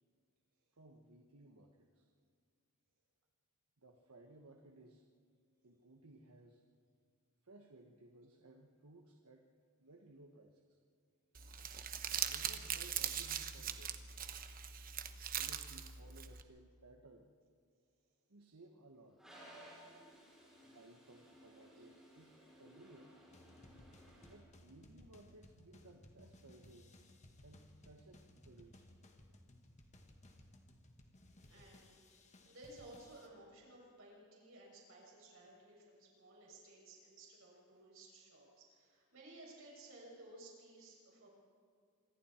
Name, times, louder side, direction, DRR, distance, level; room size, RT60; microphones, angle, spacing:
voice 1, 0.7-2.1 3.8-5.0 5.6-6.6 7.4-9.5 9.8-10.8 12.3-14.0 15.3-17.3 18.3-19.2 20.6-23.1 24.3-26.9 27.4-28.9 31.4-31.6, right 2 dB, 85° right, 3 dB, 1.3 m, -60 dB
Crumpling crinkling, 11.3-16.4, right 9 dB, 40° right, 1.0 m, -41 dB
Toilet flush, 19.2-24.4, equal, ahead, 6.8 m, -59 dB
sound 1, 23.3-33.3, left 1 dB, 30° left, 1.8 m, -61 dB
voice 2, 31.5-41.3, right 2 dB, 65° right, -3 dB, 7.2 m, -57 dB
26.5 x 24.5 x 4.5 m, 2.1 s
head